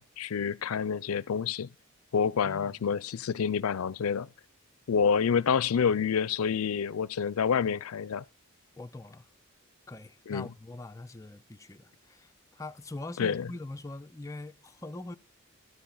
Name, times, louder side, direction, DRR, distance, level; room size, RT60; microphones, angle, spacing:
voice 1, 0.0-1.7 2.1-4.3 4.9-8.2 10.3-10.5 13.2-13.5, left 6 dB, 80° left, 0.4 m, -28 dB
voice 2, 2.4-2.8 8.8-9.3 9.9-15.2, left 2 dB, 15° left, 0.5 m, -43 dB
12.5 x 8.6 x 3.8 m
head